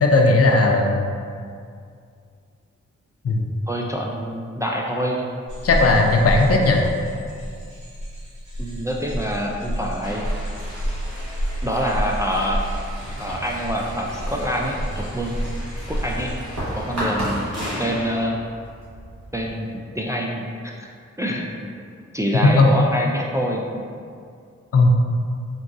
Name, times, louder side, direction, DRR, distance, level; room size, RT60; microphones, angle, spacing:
voice 1, 0.0-1.1 3.2-3.5 5.6-6.8 22.6-22.7 24.7-24.9, left 3 dB, 50° left, 1 dB, 0.5 m, -16 dB
voice 2, 3.7-5.3 8.6-10.3 11.6-12.6 13.2-15.4 15.8-16.3 16.7-17.5 17.8-18.4 19.3-19.7 19.9-20.5 20.8-20.9 21.2-21.7 22.1-23.8, equal, 10° right, -2 dB, 0.3 m, -26 dB
sound 1, 5.5-16.3, equal, 85° right, 1.3 m, -29 dB
sound 2, 10.0-18.3, equal, 40° right, 1.5 m, -38 dB
sound 3, 13.2-19.7, equal, 60° right, 1.5 m, -34 dB
3.9 x 2.4 x 2.6 m, 2.3 s
cardioid pair, 45°, 30 cm